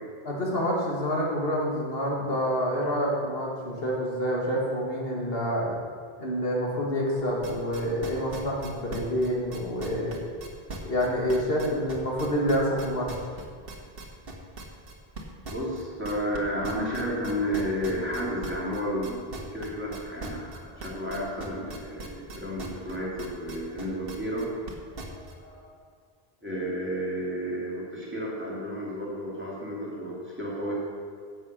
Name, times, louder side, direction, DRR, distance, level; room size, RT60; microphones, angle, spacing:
voice 1, 0.3-5.8 6.2-10.1 10.8-13.1 25.4-25.6, equal, 70° left, -3 dB, 2.2 m, -27 dB
sound 1, 7.2-25.3, right 3 dB, 65° right, 1.6 m, -39 dB
voice 2, 15.4-24.5 26.4-30.7, equal, 10° right, -6 dB, 2.9 m, -32 dB
9.9 x 7.7 x 6.8 m, 2.1 s
omnidirectional pair, 1.0 m